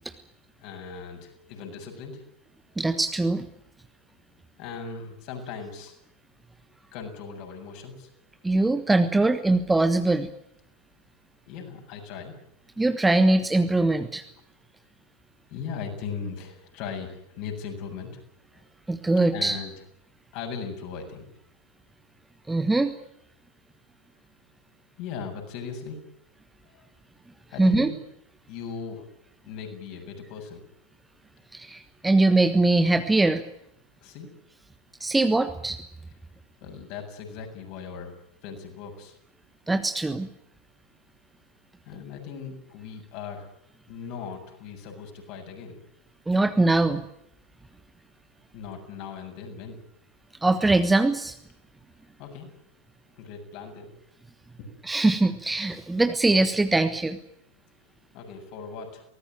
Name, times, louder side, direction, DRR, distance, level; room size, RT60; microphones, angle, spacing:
voice 1, 0.6-2.2 4.6-6.0 6.9-8.1 11.5-12.4 15.5-18.1 18.5-18.6 19.3-19.7 20.3-21.3 25.0-26.0 26.7-26.8 27.5-28.0 28.5-29.1 29.5-30.6 34.0-34.3 36.6-38.1 38.4-39.2 41.9-43.5 43.9-45.8 48.5-49.8 52.2-52.5 53.2-53.9 54.6-54.7 57.8-59.0, left 6 dB, 45° left, 3 dB, 7.4 m, -38 dB
voice 2, 2.8-3.4 8.4-10.3 12.8-14.2 18.9-19.6 22.5-22.9 27.6-27.9 31.5-33.4 35.0-35.8 39.7-40.3 46.3-47.0 50.4-51.3 54.9-57.2, right 2 dB, 5° right, 9 dB, 1.3 m, -22 dB
23.5 x 19.5 x 9.2 m, 0.74 s
figure-of-eight pair, 90°, 0 cm